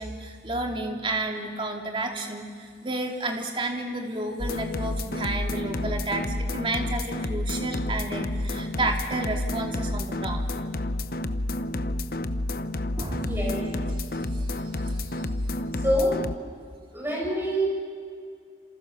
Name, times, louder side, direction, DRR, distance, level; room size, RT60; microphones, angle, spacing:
voice 1, 0.0-10.5 13.0-13.3 14.1-15.3, right 2 dB, 30° right, 2 dB, 2.6 m, -31 dB
sound 1, 4.4-16.3, left 1 dB, 55° left, 0.9 m, -30 dB
voice 2, 13.1-13.7 15.8-16.2 16.9-17.7, equal, 15° right, -2 dB, 7.5 m, -26 dB
28.0 x 27.5 x 6.9 m, 2.2 s
head